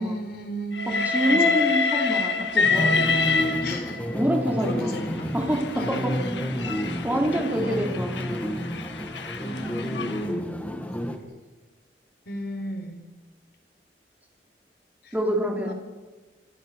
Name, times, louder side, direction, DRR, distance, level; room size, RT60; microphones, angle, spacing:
voice 1, 0.0-1.6 3.6-4.0 4.6-5.3 5.7-6.3 7.5-7.9 9.4-10.6 12.3-13.0 15.0-15.2 15.7-15.8, equal, 65° left, 5 dB, 4.3 m, -34 dB
Train, 0.7-4.1 5.0-10.2, left 4 dB, 85° left, 1.9 m, -27 dB
voice 2, 0.9-3.5 4.1-4.9 5.3-6.1 7.0-8.6 15.1-15.7, equal, 10° right, 0 dB, 3.2 m, -27 dB
sound 1, 2.6-11.2, equal, 10° left, 2.1 m, -30 dB
26.5 x 15.0 x 6.7 m, 1.2 s
head